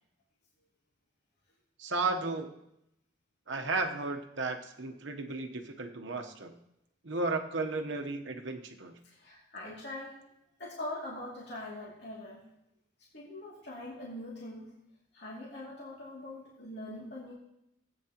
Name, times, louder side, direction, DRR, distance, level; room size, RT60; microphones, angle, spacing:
voice 1, 1.8-2.5 3.5-6.5 7.0-8.9, right 3 dB, 70° right, 4 dB, 1.0 m, -34 dB
voice 2, 9.0-10.2 10.6-12.4 13.1-14.7 15.1-17.3, left 1 dB, 60° left, -6 dB, 2.6 m, -42 dB
17.5 x 8.7 x 3.0 m, 0.83 s
head